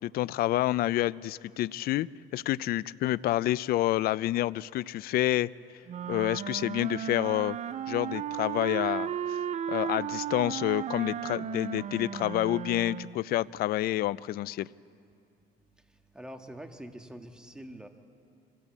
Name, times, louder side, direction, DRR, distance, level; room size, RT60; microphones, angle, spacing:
voice 1, 0.0-5.5 6.1-7.6 7.9-9.4 9.7-14.7, left 15 dB, 65° left, 19 dB, 0.4 m, -28 dB
sound 1, 5.9-13.2, right 9 dB, 45° right, 0.5 m, -35 dB
voice 2, 16.1-17.9, right 1 dB, 5° right, 4 dB, 1.5 m, -44 dB
25.0 x 15.5 x 8.4 m, 2.4 s
cardioid pair, 110°, 17 cm